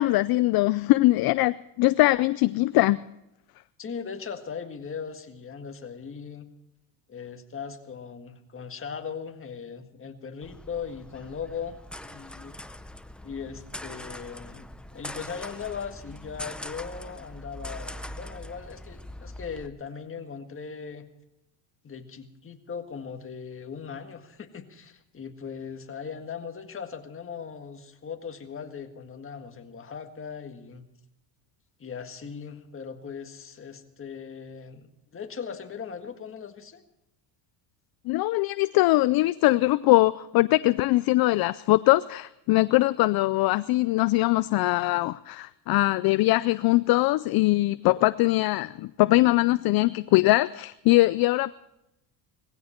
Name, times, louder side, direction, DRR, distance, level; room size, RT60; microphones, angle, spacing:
voice 1, 0.0-3.0 38.1-51.5, left 19 dB, 50° left, 16 dB, 0.5 m, -22 dB
voice 2, 3.8-6.5 7.1-12.5 13.2-21.1 21.8-30.9 31.8-36.8, left 6 dB, 25° left, 5 dB, 1.7 m, -39 dB
sound 1, 10.4-19.7, left 1 dB, ahead, 0.5 m, -42 dB
19.0 x 16.0 x 4.4 m, 0.88 s
cardioid pair, 120°, 48 cm